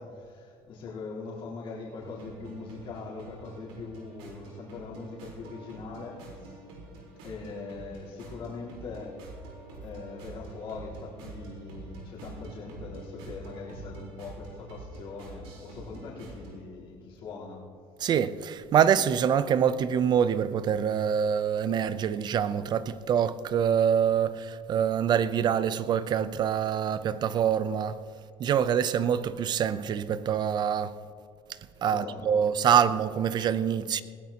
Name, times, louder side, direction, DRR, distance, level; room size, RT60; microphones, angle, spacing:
voice 1, 0.0-6.6 7.2-9.2 9.8-17.7 31.9-32.5, left 4 dB, 60° left, 3.8 m, -41 dB
sound 1, 2.0-16.6, right 2 dB, 90° right, 4.1 m, -46 dB
voice 2, 18.0-28.0 28.4-30.9 31.8-34.0, right 8 dB, 45° right, 0.6 m, -25 dB
20.0 x 15.5 x 2.9 m
cardioid pair, 120°, 10 cm